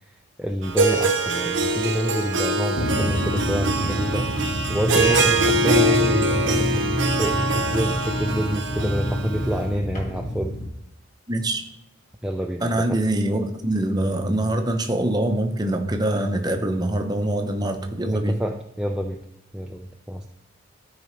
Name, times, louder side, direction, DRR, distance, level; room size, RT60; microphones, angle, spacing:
voice 1, 0.4-6.9 7.2-10.6 12.2-13.0 18.1-19.2 19.5-20.3, equal, 5° right, 1 dB, 0.3 m, -27 dB
Harp, 0.6-9.6, right 2 dB, 65° right, 0.7 m, -23 dB
sound 1, 2.7-10.7, equal, 40° left, 1.3 m, -28 dB
voice 2, 11.3-11.6 12.6-18.4, right 1 dB, 20° right, 5 dB, 0.7 m, -24 dB
13.0 x 4.8 x 3.2 m, 0.83 s
head